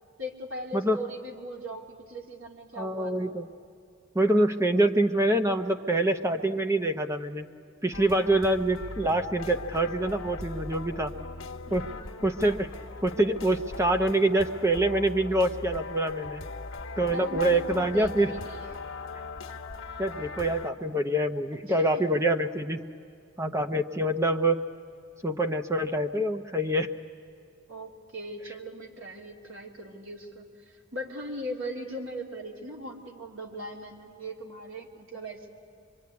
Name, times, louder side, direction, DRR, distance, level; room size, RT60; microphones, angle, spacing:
voice 1, 0.2-3.4 7.9-8.2 11.7-12.1 17.1-18.8 21.8-22.0 27.7-35.5, equal, 70° right, 0 dB, 3.0 m, -39 dB
voice 2, 2.7-3.5 4.1-7.5 7.8-11.1 11.7-11.9 12.2-12.7 13.0-16.4 17.0-18.3 20.0-22.8 23.4-24.6 25.2-26.9, right 1 dB, 15° right, 7 dB, 0.7 m, -25 dB
sound 1, 7.9-20.7, left 3 dB, 75° left, 1.3 m, -40 dB
24.0 x 23.5 x 9.5 m, 2.5 s
head